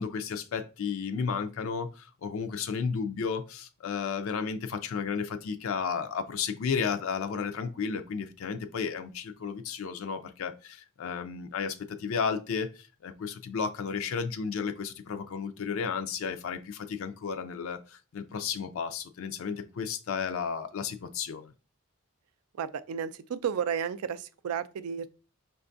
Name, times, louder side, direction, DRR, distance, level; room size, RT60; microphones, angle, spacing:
voice 1, 0.0-21.5, left 6 dB, 65° left, 0.4 m, -33 dB
voice 2, 22.5-25.1, right 7 dB, 85° right, 0.4 m, -32 dB
5.6 x 2.2 x 2.6 m
head